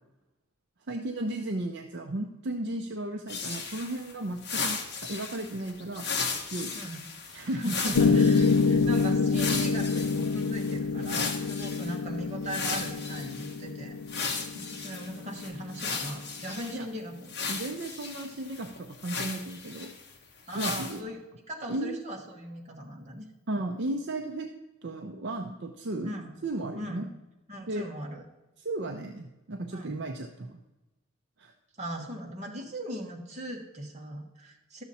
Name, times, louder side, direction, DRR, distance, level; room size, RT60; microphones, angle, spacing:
voice 1, 0.9-6.1 6.5-6.7 7.3-8.1 16.7-16.9 17.5-19.9 20.5-21.0 21.7-22.0 23.5-24.5 24.8-26.1 26.4-27.1 27.7-27.8 28.6-30.6 31.4-31.5, right 2 dB, 50° right, 3 dB, 0.6 m, -34 dB
sound 1, 3.3-11.9 12.4-13.6 14.1-16.8 17.3-20.1 20.5-21.0, left 5 dB, 50° left, 1.1 m, -36 dB
voice 2, 7.5-17.6 20.5-21.2 21.5-23.3 23.5-23.7 26.0-26.3 26.8-27.1 27.5-28.2 29.7-30.0 31.8-34.8, equal, 30° right, 0 dB, 1.3 m, -39 dB
Piano, 7.9-16.0, left 4 dB, 90° left, 0.5 m, -27 dB
12.0 x 7.1 x 4.2 m, 1.0 s
head